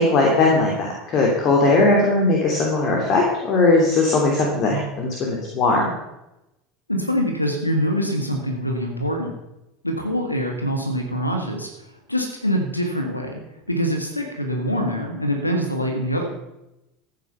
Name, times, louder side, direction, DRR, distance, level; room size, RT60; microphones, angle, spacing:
voice 1, 0.0-5.9, left 2 dB, 40° left, -1 dB, 3.1 m, -19 dB
voice 2, 6.9-9.3 9.8-13.4 13.7-16.2, equal, 90° left, 3 dB, 1.6 m, -24 dB
14.5 x 9.3 x 5.6 m, 0.92 s
figure-of-eight pair, 75°, 0 cm